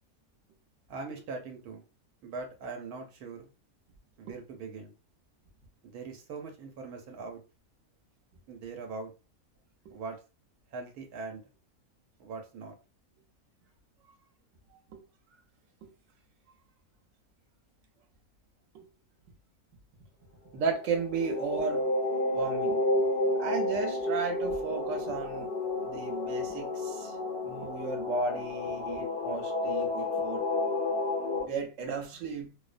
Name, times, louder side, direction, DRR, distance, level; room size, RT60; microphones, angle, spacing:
voice 1, 0.9-1.8 2.2-3.5 4.2-4.9 5.8-7.4 8.5-9.1 9.9-10.2 10.7-11.4 12.2-12.7, right 4 dB, 85° right, 1.1 m, -41 dB
voice 2, 20.5-21.9 22.3-22.8 23.4-25.5 25.8-27.1 27.4-30.4 31.4-32.5, right 4 dB, 65° right, 1.0 m, -34 dB
sound 1, 20.8-31.4, left 2 dB, 70° left, 0.5 m, -31 dB
2.7 x 2.0 x 2.4 m
omnidirectional pair, 1.6 m